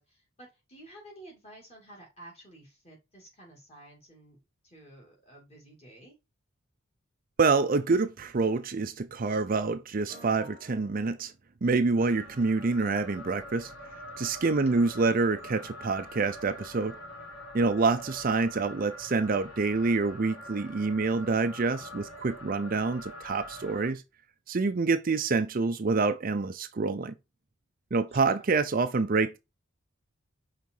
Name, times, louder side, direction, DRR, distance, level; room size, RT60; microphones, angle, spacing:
voice 1, 0.0-4.4 4.6-6.1 14.7-14.9 28.1-28.4, right 1 dB, 30° left, 2.7 m, -52 dB
voice 2, 7.4-11.3 11.6-13.7 14.2-16.9 17.5-24.0 24.5-27.1 27.9-29.4, right 4 dB, 40° right, 0.5 m, -27 dB
sound 1, 10.1-11.2 11.9-23.9, left 1 dB, 70° left, 1.8 m, -45 dB
5.4 x 3.8 x 4.6 m
head